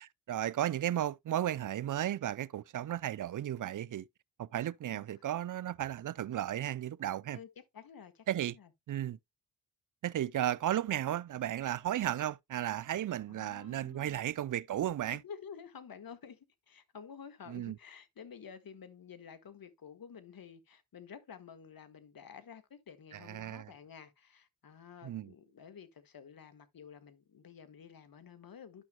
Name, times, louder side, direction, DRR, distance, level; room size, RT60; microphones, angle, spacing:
voice 1, 0.0-4.0 4.4-7.4 8.3-8.6 8.9-9.2 10.0-15.2 17.5-17.8 23.1-23.7 25.0-25.3, right 12 dB, 45° right, 0.6 m, -34 dB
voice 2, 4.8-5.2 7.3-8.2 8.5-8.7 13.3-14.2 15.1-28.8, left 7 dB, 50° left, 1.7 m, -51 dB
11.5 x 6.0 x 2.2 m
supercardioid pair, 50°, 45 cm